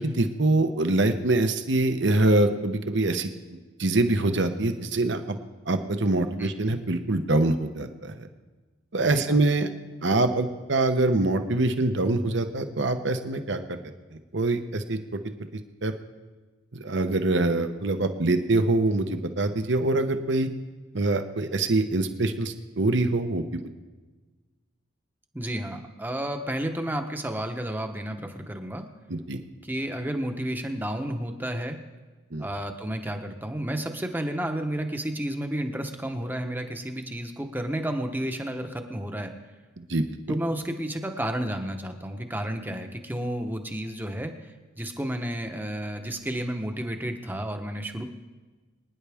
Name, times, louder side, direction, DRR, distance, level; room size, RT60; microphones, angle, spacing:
voice 1, 0.0-3.3 3.8-5.4 5.7-8.1 8.9-9.7 10.0-13.8 14.3-15.0 15.8-15.9 16.7-20.5 20.9-23.6 29.1-29.4 32.3-32.5 39.9-40.0, right 2 dB, 60° right, 8 dB, 0.9 m, -24 dB
voice 2, 6.4-6.8 9.0-9.4 25.3-28.8 29.6-31.8 32.4-39.3 40.3-44.3 44.8-48.0, right 1 dB, 10° right, 5 dB, 0.9 m, -31 dB
24.0 x 10.0 x 3.5 m, 1.3 s
head